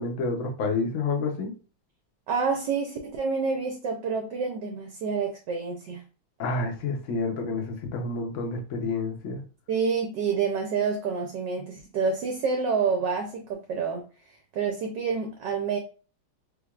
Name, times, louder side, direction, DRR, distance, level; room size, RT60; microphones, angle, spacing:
voice 1, 0.0-1.5 6.4-9.4, left 3 dB, 75° left, 0.7 m, -29 dB
voice 2, 2.3-6.0 9.7-14.0 14.5-15.8, right 5 dB, 70° right, 1.1 m, -28 dB
3.5 x 3.3 x 2.3 m
omnidirectional pair, 2.4 m